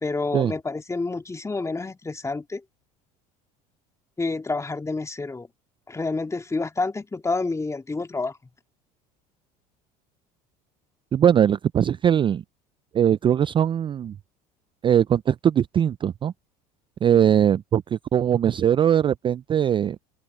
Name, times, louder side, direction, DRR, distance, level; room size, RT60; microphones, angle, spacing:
voice 1, 0.0-2.6 4.2-5.5 5.9-8.4, left 3 dB, 15° left, 2.6 m, -28 dB
voice 2, 11.1-12.4 12.9-14.2 14.8-16.3 17.0-20.0, right 9 dB, 25° right, 0.3 m, -20 dB
open air
supercardioid pair, 90°, 19 cm